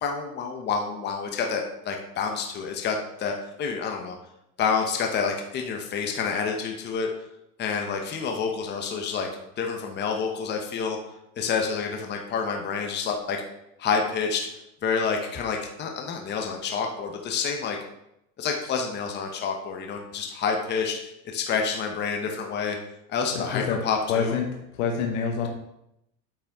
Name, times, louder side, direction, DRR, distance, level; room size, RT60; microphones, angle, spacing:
voice 1, 0.0-4.1 4.6-7.1 7.6-9.3 9.6-13.4 13.8-14.5 14.8-17.8 18.4-22.8 23.1-24.4, left 5 dB, 25° left, 2 dB, 0.9 m, -28 dB
voice 2, 23.3-23.8 24.1-24.5 24.8-25.5, left 6 dB, 70° left, 1 dB, 1.4 m, -26 dB
8.7 x 5.7 x 3.5 m, 0.82 s
supercardioid pair, 140°, 43 cm